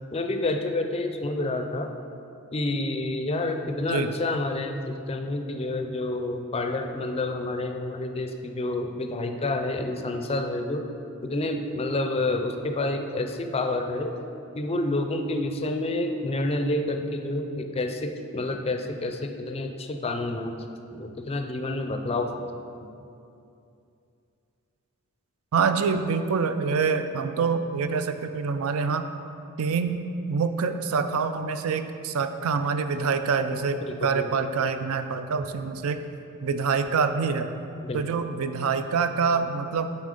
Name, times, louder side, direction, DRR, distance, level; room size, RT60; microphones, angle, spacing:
voice 1, 0.1-1.9 2.5-10.8 11.2-14.1 14.5-20.6 20.9-22.4 22.8-22.9 33.9-34.4 37.8-38.0, left 2 dB, 25° left, 5 dB, 0.4 m, -29 dB
voice 2, 25.5-29.1 29.6-30.0 30.3-36.0 36.4-37.5 37.9-40.0, right 5 dB, 65° right, 9 dB, 0.4 m, -26 dB
8.2 x 4.3 x 5.3 m, 2.6 s
head